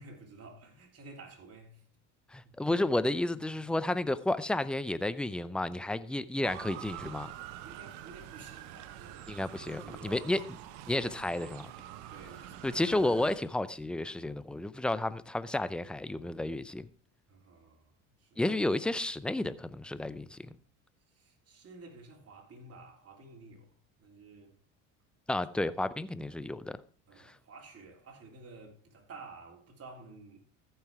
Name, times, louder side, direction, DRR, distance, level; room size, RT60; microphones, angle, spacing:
voice 1, 0.0-1.8 2.4-2.7 7.6-10.2 12.1-12.8 17.3-17.9 18.2-18.4 21.1-23.7 24.0-24.5 27.1-30.4, right 3 dB, 35° right, 3.5 m, -52 dB
voice 2, 2.3-7.3 9.3-10.4 10.9-11.7 12.6-16.9 18.4-20.5 25.3-26.8 27.2-27.3, left 1 dB, ahead, 0.4 m, -32 dB
Motor vehicle (road) / Siren, 6.4-13.4, right 12 dB, 75° right, 1.0 m, -46 dB
14.0 x 5.7 x 4.7 m
supercardioid pair, 85°, 40 cm